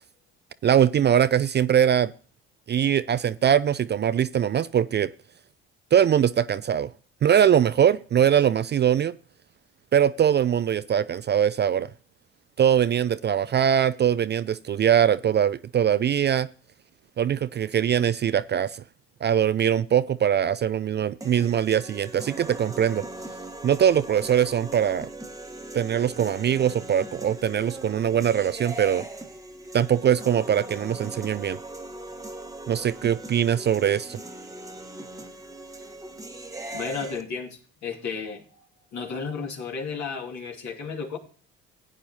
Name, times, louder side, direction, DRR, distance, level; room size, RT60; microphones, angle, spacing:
voice 1, 0.6-2.1 2.7-5.1 5.9-6.9 7.2-9.1 9.9-11.9 12.6-16.5 17.2-18.8 19.2-23.0 23.6-25.1 25.7-29.1 29.7-31.6 32.7-34.2, right 9 dB, 35° right, 0.4 m, -22 dB
sound 1, 21.2-37.2, right 2 dB, 10° right, 1.2 m, -40 dB
voice 2, 36.7-38.4 38.9-41.2, left 5 dB, 60° left, 2.5 m, -33 dB
15.5 x 8.8 x 2.8 m
hypercardioid pair, 55°, 32 cm